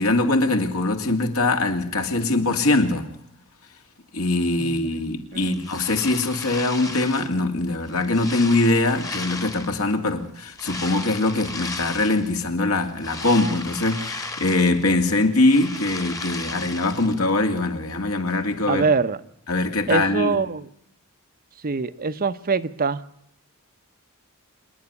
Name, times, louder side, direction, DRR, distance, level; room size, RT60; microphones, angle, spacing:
voice 1, 0.0-3.1 4.1-18.8 19.5-20.4, left 2 dB, 70° left, 2.5 m, -22 dB
voice 2, 4.6-5.0 5.3-5.6 18.7-19.2 19.9-20.7 21.6-23.0, right 4 dB, 40° right, 0.8 m, -24 dB
sound 1, 5.4-7.4 7.8-9.9 10.5-12.3 12.8-15.0 15.3-17.2, left 3 dB, 15° left, 1.3 m, -35 dB
26.5 x 10.5 x 9.7 m
head